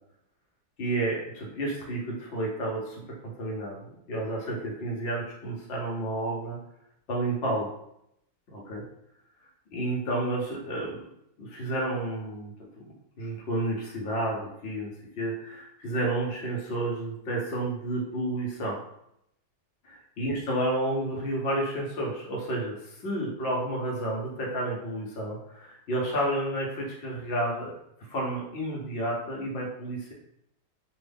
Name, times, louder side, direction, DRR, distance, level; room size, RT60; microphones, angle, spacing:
voice 1, 0.8-6.6 7.1-7.7 8.5-8.8 9.7-11.0 11.4-12.5 12.8-18.8 19.8-27.7 28.1-30.1, right 1 dB, 50° left, -2 dB, 0.7 m, -31 dB
3.1 x 2.3 x 3.4 m, 0.77 s
omnidirectional pair, 2.1 m